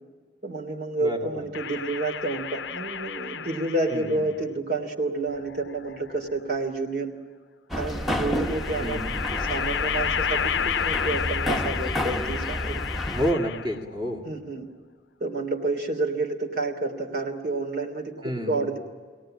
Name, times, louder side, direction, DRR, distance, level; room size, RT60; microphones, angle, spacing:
voice 1, 0.4-7.1 7.8-13.0 14.2-14.7 15.2-18.8, right 2 dB, 65° right, 1 dB, 3.0 m, -29 dB
voice 2, 1.0-1.4 3.9-4.2 8.8-9.1 13.1-14.2 18.2-18.7, equal, 30° right, 0 dB, 2.2 m, -29 dB
sound 1, 1.5-4.2 5.3-6.3 7.9-13.9, left 7 dB, 85° left, 0.6 m, -31 dB
sound 2, 7.7-13.3, left 1 dB, ahead, 1.0 m, -30 dB
25.0 x 18.0 x 8.8 m, 1.5 s
head